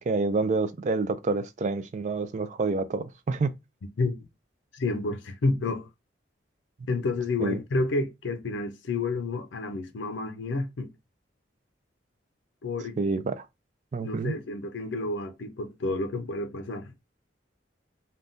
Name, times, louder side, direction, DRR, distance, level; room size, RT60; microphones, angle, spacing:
voice 1, 0.0-3.5 7.4-7.6 13.0-13.5 13.9-14.3, right 3 dB, 40° right, 0.3 m, -28 dB
voice 2, 4.7-5.9 6.9-10.9 12.6-13.0 14.0-16.9, left 3 dB, 75° left, 0.5 m, -30 dB
3.4 x 2.2 x 2.6 m
head